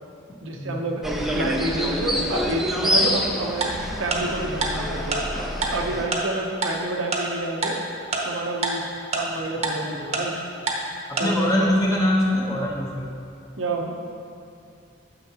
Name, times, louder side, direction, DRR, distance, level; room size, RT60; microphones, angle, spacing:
voice 1, 0.4-1.0 1.3-3.7 4.0-5.2 5.7-7.7 8.2-8.8 9.1-10.4 11.2-11.5 13.6-13.9, right 2 dB, 90° right, 0 dB, 0.8 m, -28 dB
sound 1, 1.0-6.1, equal, ahead, 0.5 m, -26 dB
Tick-tock, 3.6-3.7 4.1-4.2 4.6-4.7 5.1-5.2 5.6-5.7 6.1-6.2 6.6-6.7 7.1-7.2 7.6-7.7 8.1-8.2 8.6-8.7 9.1-9.2 9.6-9.7 10.1-10.2 10.7-10.8 11.2-11.3, right 4 dB, 35° right, 0.9 m, -24 dB
voice 2, 11.1-13.1, left 1 dB, 20° left, -3 dB, 1.0 m, -22 dB
9.1 x 7.0 x 2.9 m, 2.5 s
head